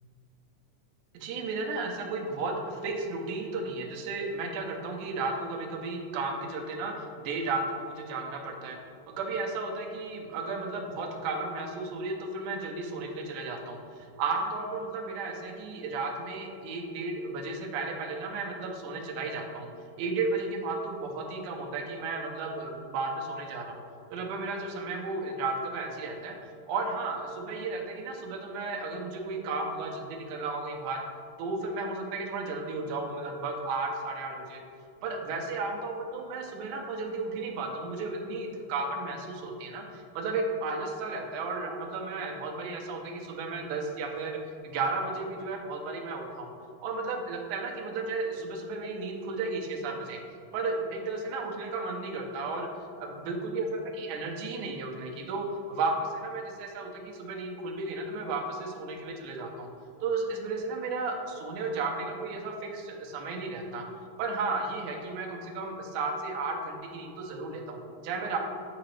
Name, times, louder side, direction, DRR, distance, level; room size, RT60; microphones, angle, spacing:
voice 1, 1.1-8.8 9.2-19.7 20.0-23.8 24.1-26.4 26.7-31.0 31.4-34.6 35.0-46.5 46.8-50.2 50.5-52.7 53.0-59.7 60.0-63.8 64.2-68.4, right 3 dB, 85° right, 1 dB, 2.2 m, -34 dB
8.5 x 3.8 x 3.2 m, 2.5 s
omnidirectional pair, 3.5 m